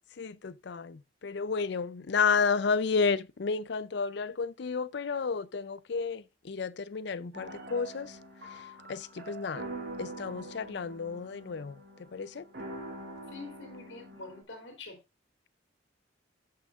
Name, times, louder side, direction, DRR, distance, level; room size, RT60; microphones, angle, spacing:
voice 1, 0.2-8.2 8.9-9.7 10.0-12.4, left 5 dB, 65° left, 0.5 m, -31 dB
sound 1, 7.3-14.4, right 1 dB, 65° right, 2.6 m, -44 dB
voice 2, 13.3-15.0, left 3 dB, 85° left, 3.2 m, -45 dB
16.5 x 5.6 x 2.4 m
head